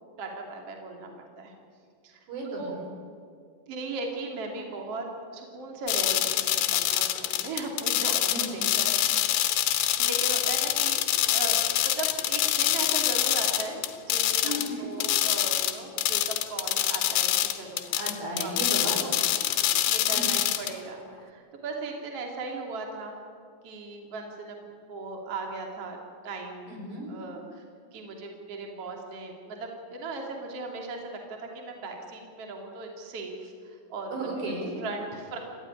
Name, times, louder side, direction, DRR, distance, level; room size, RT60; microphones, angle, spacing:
voice 1, 0.2-1.5 2.0-2.7 3.7-5.1 5.3-9.2 10.0-11.0 11.3-17.9 18.3-18.5 18.8-23.2 23.6-26.0 26.2-26.7 27.1-27.6 27.9-31.2 31.5-34.2 34.8-35.4, right 3 dB, 40° right, 1 dB, 3.4 m, -38 dB
voice 2, 2.3-2.8 8.3-8.6 14.4-14.9 18.0-19.2 20.1-20.4 26.7-27.1 34.1-34.7, right 1 dB, 80° right, 1 dB, 7.2 m, -34 dB
sound 1, 5.9-14.7 15.0-20.7, left 13 dB, 85° left, 3.2 m, -26 dB
27.0 x 15.0 x 9.9 m, 2.2 s
omnidirectional pair, 4.9 m